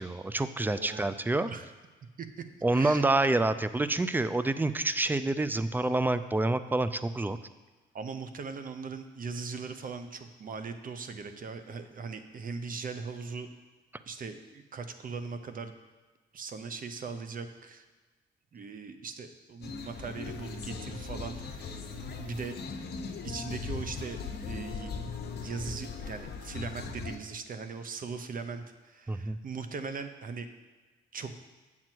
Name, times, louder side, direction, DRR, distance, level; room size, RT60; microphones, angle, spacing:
voice 1, 0.0-1.5 2.6-7.4 29.1-29.4, right 2 dB, 10° right, 13 dB, 0.4 m, -27 dB
voice 2, 0.8-1.1 1.5-1.6 2.2-2.4 2.7-3.0 7.9-13.5 14.1-15.7 16.3-17.9 18.5-22.6 23.2-24.2 24.5-24.9 25.2-30.5 31.1-31.4, right 5 dB, 45° right, 9 dB, 0.8 m, -39 dB
sound 1, 19.6-27.2, left 5 dB, 55° left, 1.0 m, -39 dB
7.8 x 7.2 x 4.6 m, 1.3 s
cardioid pair, 90°, 20 cm